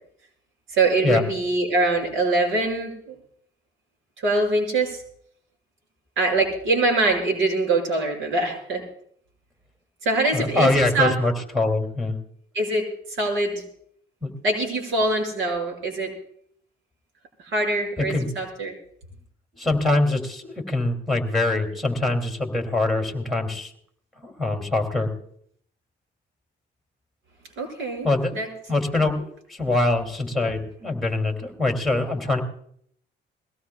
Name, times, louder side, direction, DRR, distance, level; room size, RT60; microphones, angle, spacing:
voice 1, 0.7-3.2 4.2-5.0 6.2-8.8 10.0-11.1 12.5-13.6 14.4-16.1 17.4-18.7 27.6-28.1 28.3-28.5, right 2 dB, 80° right, 1 dB, 5.7 m, -23 dB
voice 2, 10.3-12.2 14.2-14.3 18.1-18.3 19.6-23.7 24.2-25.1 28.0-28.3 28.7-32.4, left 2 dB, ahead, 3 dB, 2.8 m, -23 dB
22.5 x 17.5 x 2.4 m, 0.65 s
cardioid pair, 90°, 20 cm